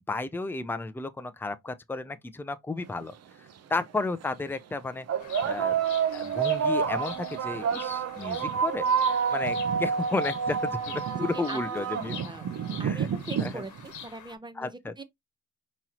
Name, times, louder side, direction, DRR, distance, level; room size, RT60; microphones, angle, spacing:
voice 1, 0.1-3.1 3.7-5.1 5.4-5.8 6.1-12.2 12.8-13.1 13.4-13.6 14.6-15.0, left 3 dB, 5° left, 0.5 m, -33 dB
sound 1, 3.0-3.1 4.0-4.2 5.1-14.0, right 7 dB, 55° right, 0.8 m, -28 dB
Bird vocalization bird call bird song, 5.2-14.3, left 9 dB, 75° left, 1.1 m, -46 dB
voice 2, 11.2-11.9 12.2-12.4 12.8-15.0, right 2 dB, 15° right, 0.8 m, -41 dB
5.3 x 3.1 x 3.0 m
cardioid pair, 90°, 30 cm